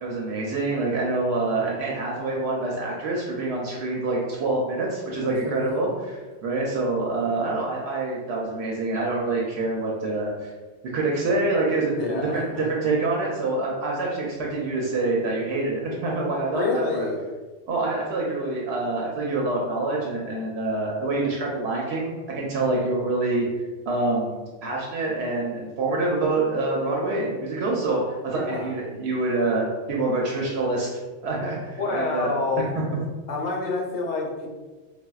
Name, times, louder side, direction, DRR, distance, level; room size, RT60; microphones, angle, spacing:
voice 1, 0.0-10.5 10.9-17.1 17.7-23.5 23.9-30.9 31.2-32.3, right 2 dB, 75° right, -2 dB, 0.8 m, -26 dB
voice 2, 5.3-5.7 12.0-12.7 16.5-17.2 22.6-23.0 28.3-28.7 31.8-32.7 33.3-34.5, left 3 dB, 80° left, -1 dB, 0.9 m, -28 dB
4.1 x 2.2 x 2.3 m, 1.3 s
omnidirectional pair, 1.1 m